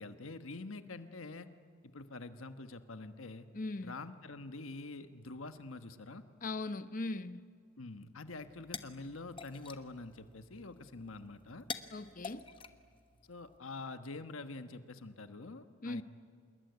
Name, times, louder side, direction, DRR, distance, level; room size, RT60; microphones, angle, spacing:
voice 1, 0.0-1.5 1.8-3.5 3.8-6.2 7.8-11.6 13.3-16.0, left 3 dB, 90° left, 1.3 m, -46 dB
voice 2, 3.5-4.0 6.4-7.4 11.9-12.4 15.8-16.0, left 2 dB, 40° left, 0.9 m, -39 dB
sound 1, 8.3-13.6, left 4 dB, 25° left, 1.2 m, -49 dB
26.5 x 21.0 x 9.6 m
head